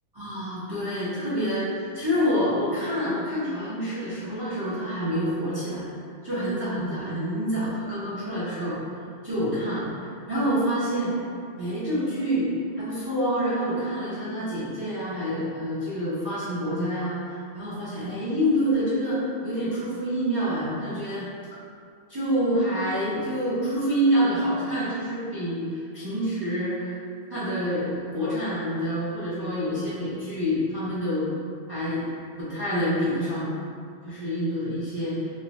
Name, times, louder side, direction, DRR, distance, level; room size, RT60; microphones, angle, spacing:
voice 1, 0.1-5.9 6.2-8.8 9.2-11.1 11.6-21.3 22.1-27.0 27.3-31.4 31.7-32.1 32.4-33.5 34.0-35.3, equal, 35° right, -11 dB, 0.4 m, -27 dB
2.6 x 2.0 x 3.0 m, 2.3 s
omnidirectional pair, 1.2 m